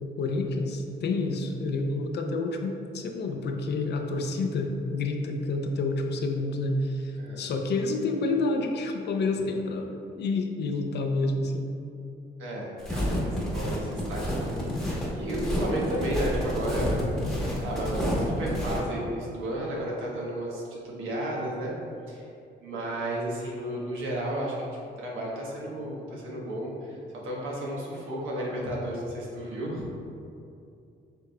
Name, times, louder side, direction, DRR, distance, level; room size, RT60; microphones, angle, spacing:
voice 1, 0.0-11.7, left 3 dB, 60° left, 4 dB, 0.5 m, -29 dB
voice 2, 12.4-17.0 17.6-21.7 22.1-22.3 22.6-24.7 25.0-29.8, right 1 dB, 85° right, -4 dB, 1.1 m, -33 dB
sound 1, 12.8-18.8, equal, ahead, 1.1 m, -29 dB
6.6 x 3.3 x 2.2 m, 2.6 s
cardioid pair, 90°, 20 cm